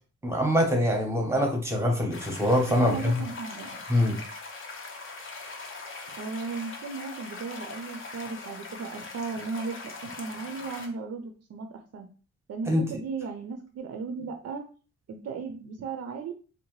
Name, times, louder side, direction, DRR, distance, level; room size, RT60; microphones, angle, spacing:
voice 1, 0.2-3.2 3.9-4.2 12.7-12.9, left 1 dB, 10° right, 1 dB, 0.7 m, -24 dB
sound 1, 2.1-10.9, left 3 dB, 45° left, 0.5 m, -41 dB
voice 2, 2.7-3.8 6.2-12.1 12.5-14.7 15.1-16.3, right 4 dB, 55° right, 5 dB, 0.4 m, -36 dB
2.7 x 2.1 x 2.9 m, 0.37 s
wide cardioid pair, 130°, 30 cm